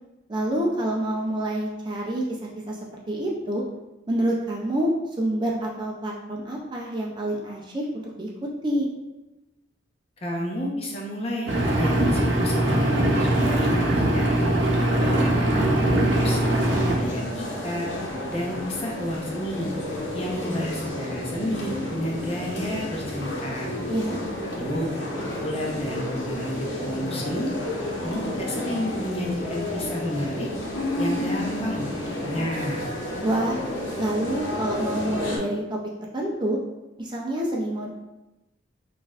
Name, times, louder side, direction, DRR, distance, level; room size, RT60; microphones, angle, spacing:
voice 1, 0.3-2.2 2.7-2.8 3.1-3.6 4.1-4.9 5.2-8.9 23.9-24.2 33.2-33.6 34.0-35.8 36.1-36.6 37.0-37.9, right 1 dB, 25° right, -2 dB, 0.4 m, -27 dB
voice 2, 10.2-14.3 15.0-16.4 16.8-17.9 18.3-19.7 20.1-23.7 24.4-25.0 25.4-26.5 26.8-27.5 28.0-30.5 31.0-32.8, equal, 30° left, -2 dB, 0.7 m, -30 dB
Engine, 11.5-17.0, right 1 dB, 70° right, 0.7 m, -21 dB
sound 1, 16.1-35.4, left 1 dB, 75° left, 1.0 m, -31 dB
6.0 x 2.5 x 2.4 m, 1.0 s
head